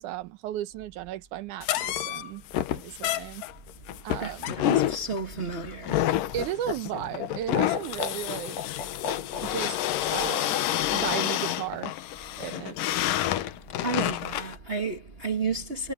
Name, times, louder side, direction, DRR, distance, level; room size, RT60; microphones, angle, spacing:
voice 1, 0.0-2.4 2.7-3.4 4.0-4.5 6.3-8.6 9.4-9.8 10.1-10.6 10.9-11.9 12.4-12.8, right 12 dB, 75° right, 2.3 m, -35 dB
sound 1, 1.6-14.6, left 13 dB, 90° left, 2.7 m, -29 dB
Laughter, 4.1-9.7 11.0-11.7, left 6 dB, 70° left, 4.1 m, -37 dB
voice 2, 4.2-6.2 13.8-15.9, right 4 dB, 50° right, 0.7 m, -32 dB
omnidirectional pair, 3.8 m